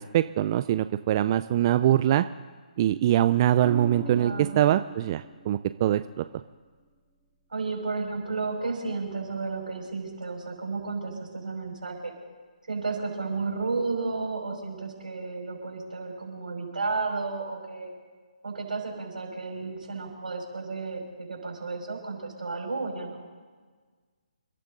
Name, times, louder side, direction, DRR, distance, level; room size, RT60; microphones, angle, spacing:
voice 1, 0.0-2.2 2.8-6.2, right 12 dB, 30° right, 11 dB, 0.4 m, -23 dB
sound 1, 3.6-7.8 9.5-9.8, right 6 dB, 10° right, 2.0 m, -44 dB
voice 2, 4.1-4.6 7.5-12.1 12.7-17.9 18.4-23.2, right 4 dB, 80° right, 0 dB, 5.7 m, -32 dB
28.5 x 12.0 x 3.9 m, 1.5 s
figure-of-eight pair, 150°, 4 cm